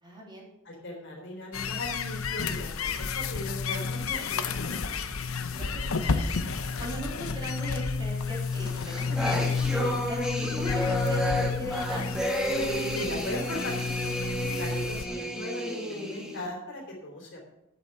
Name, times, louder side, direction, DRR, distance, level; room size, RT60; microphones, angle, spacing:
voice 1, 0.0-0.5 5.5-6.3 6.8-10.2 10.6-12.0, equal, 20° right, -3 dB, 3.3 m, -39 dB
voice 2, 0.7-4.5 4.8-5.1 12.9-17.5, left 1 dB, 60° left, 0 dB, 3.6 m, -39 dB
sound 1, 1.5-15.0, left 5 dB, 90° left, 0.8 m, -31 dB
sound 2, 8.6-16.5, equal, 5° right, 1.5 m, -31 dB
8.8 x 8.1 x 7.0 m, 0.89 s
head